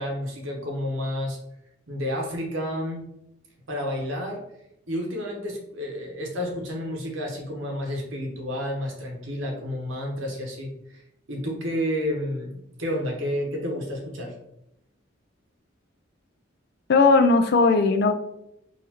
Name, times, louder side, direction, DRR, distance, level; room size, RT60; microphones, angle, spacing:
voice 1, 0.0-1.4 1.9-3.0 3.7-4.4 4.9-11.0 11.3-14.3, equal, 80° right, 0 dB, 1.0 m, -30 dB
voice 2, 16.9-18.1, left 3 dB, 55° left, 8 dB, 0.3 m, -18 dB
4.0 x 2.5 x 2.9 m, 0.80 s
head